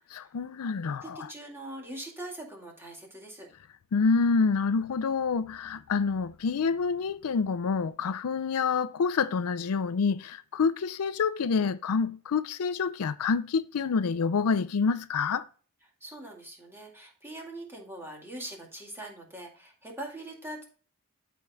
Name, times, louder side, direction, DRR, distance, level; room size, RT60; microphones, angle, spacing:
voice 1, 0.1-1.3 3.9-15.4, left 5 dB, 80° left, 0.5 m, -27 dB
voice 2, 1.0-3.5 16.0-20.6, right 1 dB, 10° right, 2.2 m, -42 dB
13.0 x 4.6 x 2.3 m
head